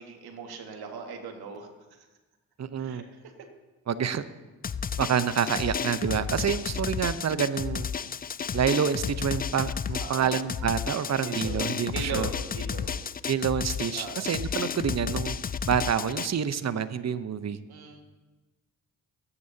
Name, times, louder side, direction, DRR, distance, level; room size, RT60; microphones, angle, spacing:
voice 1, 0.0-2.1 2.8-3.0 10.0-10.4 11.2-13.0 13.9-14.2 17.7-18.0, right 5 dB, 70° right, 3 dB, 2.0 m, -39 dB
voice 2, 2.6-3.0 3.9-4.2 5.0-7.9 8.5-12.3 13.3-15.4 15.7-17.6, right 7 dB, 45° right, 13 dB, 0.9 m, -28 dB
Drum, 4.6-16.3, left 7 dB, 25° left, 0.4 m, -32 dB
21.5 x 9.8 x 2.9 m, 1.1 s
hypercardioid pair, 40°, 38 cm